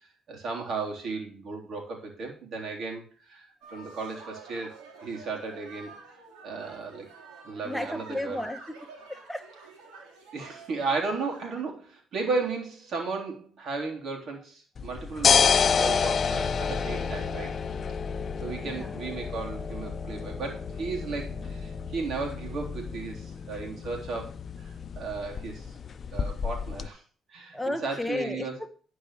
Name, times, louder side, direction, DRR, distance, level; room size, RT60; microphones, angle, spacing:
voice 1, 0.3-4.8 5.0-5.9 6.4-7.1 7.5-8.4 10.3-15.4 15.8-17.6 18.4-24.3 24.9-25.7 26.1-27.0 27.3-28.6, right 4 dB, 65° right, 3.5 m, -34 dB
sound 1, 3.6-11.6, right 4 dB, 90° right, 3.1 m, -49 dB
voice 2, 7.6-8.8 9.1-9.5 18.6-18.9 27.5-28.7, left 1 dB, 5° left, 1.1 m, -33 dB
sound 2, 14.8-26.9, left 6 dB, 50° left, 0.6 m, -29 dB
10.5 x 4.8 x 6.5 m
supercardioid pair, 70°, 0 cm